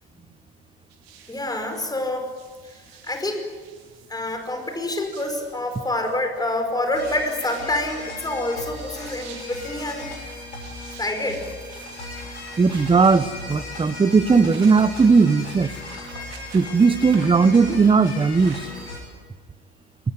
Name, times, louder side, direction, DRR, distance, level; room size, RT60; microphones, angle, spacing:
sound 1, 0.9-19.0, right 7 dB, 60° right, 4.9 m, -47 dB
voice 1, 1.3-2.3 3.0-3.5 4.1-10.1 11.0-11.5, left 1 dB, 10° left, 5 dB, 5.2 m, -27 dB
sound 2, 6.9-19.0, left 2 dB, 85° left, 6.9 m, -37 dB
voice 2, 12.6-15.7 16.5-18.6, right 4 dB, 15° right, 16 dB, 1.1 m, -17 dB
24.0 x 20.5 x 9.5 m, 1.5 s
figure-of-eight pair, 70°, 33 cm